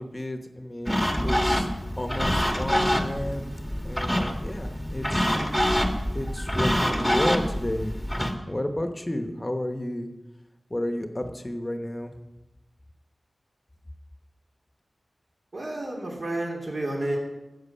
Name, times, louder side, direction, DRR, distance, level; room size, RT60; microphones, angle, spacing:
voice 1, 0.0-1.7 2.0-3.5 3.8-5.3 6.1-10.1 10.7-12.1, left 1 dB, 20° left, 6 dB, 1.0 m, -32 dB
sound 1, 0.9-8.3, equal, ahead, 1.3 m, -26 dB
voice 2, 15.5-17.2, right 1 dB, 65° right, -2 dB, 3.2 m, -30 dB
13.5 x 8.1 x 5.6 m, 1.0 s
wide cardioid pair, 90°, 0 cm